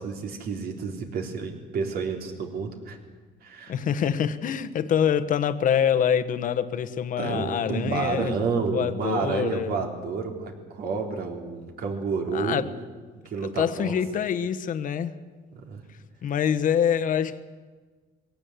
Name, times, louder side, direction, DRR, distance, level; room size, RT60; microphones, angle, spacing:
voice 1, 0.0-3.0 3.4-3.8 7.2-12.7 13.3-13.9 15.5-15.8, right 5 dB, 65° right, 3 dB, 3.6 m, -30 dB
voice 2, 3.7-9.8 12.3-12.7 13.6-15.2 16.2-17.4, left 8 dB, 50° left, 10 dB, 1.2 m, -25 dB
22.5 x 17.0 x 8.3 m, 1.4 s
cardioid pair, 110°, 17 cm